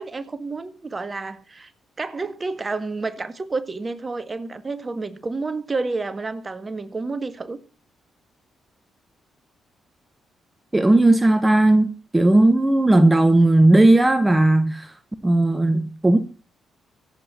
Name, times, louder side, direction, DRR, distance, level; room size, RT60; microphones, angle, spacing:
voice 1, 0.0-1.7 2.0-7.6, right 3 dB, 35° right, 1.7 m, -30 dB
voice 2, 10.7-14.9 15.2-16.2, right 2 dB, 15° right, 1.3 m, -16 dB
24.0 x 8.1 x 4.3 m
hypercardioid pair, 40°, 0 cm